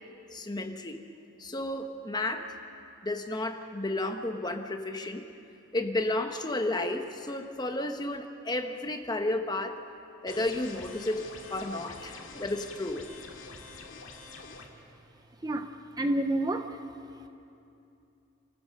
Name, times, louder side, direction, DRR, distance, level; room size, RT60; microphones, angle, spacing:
voice 1, 0.3-1.0 1.4-2.6 3.0-5.2 5.7-9.8 10.2-13.1, left 2 dB, 20° left, 6 dB, 1.0 m, -32 dB
sound 1, 10.3-14.7, left 3 dB, 65° left, 2.3 m, -46 dB
voice 2, 15.4-16.8, right 1 dB, 20° right, 7 dB, 0.6 m, -29 dB
28.5 x 14.5 x 6.5 m, 2.7 s
head